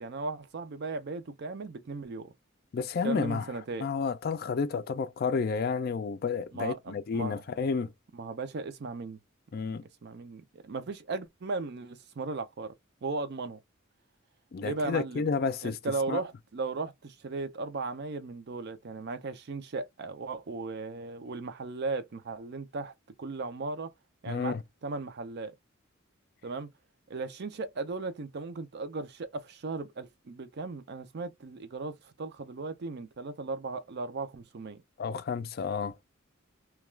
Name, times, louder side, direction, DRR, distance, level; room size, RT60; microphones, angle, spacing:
voice 1, 0.0-2.3 3.0-3.9 6.5-7.4 8.1-9.2 10.0-12.7 13.0-13.6 14.6-15.3 15.6-22.9 23.2-23.9 24.2-24.6 24.8-25.5 26.4-26.7 27.1-34.8, right 3 dB, 55° right, 0.5 m, -36 dB
voice 2, 2.7-3.5 3.8-7.9 9.5-9.8 14.5-15.8 16.1-16.2 24.3-24.6 35.0-36.0, left 5 dB, 45° left, 0.3 m, -31 dB
2.3 x 2.3 x 3.0 m
head